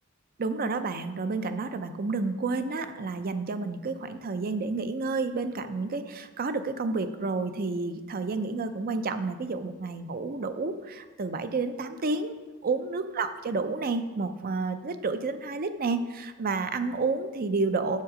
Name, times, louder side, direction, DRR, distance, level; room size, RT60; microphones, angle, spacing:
voice 1, 0.4-12.4 12.6-18.0, right 3 dB, 40° right, 10 dB, 0.5 m, -30 dB
7.4 x 7.4 x 5.0 m, 1.3 s
head